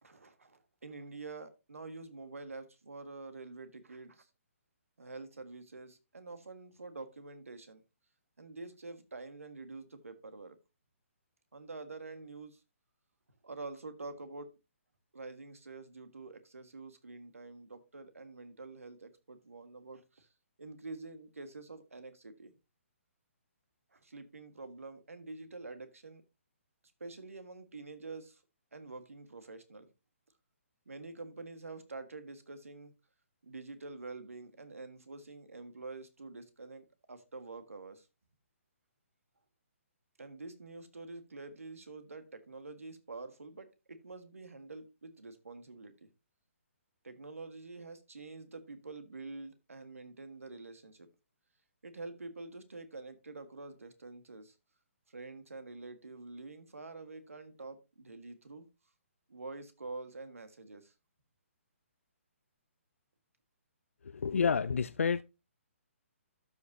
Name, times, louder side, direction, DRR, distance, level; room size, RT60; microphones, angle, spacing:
voice 1, 0.0-4.3 5.0-7.8 8.4-10.6 11.5-12.6 13.4-14.5 15.1-20.3 20.6-22.5 23.9-26.2 27.0-28.4 28.7-29.9 30.8-32.9 33.4-38.1 40.2-46.1 47.0-51.1 51.8-54.6 55.1-58.7 59.3-60.9, right 3 dB, 85° right, 1.7 m, -47 dB
voice 2, 64.1-65.2, left 6 dB, 75° left, 0.4 m, -29 dB
12.5 x 5.6 x 2.8 m
figure-of-eight pair, 140°, 7 cm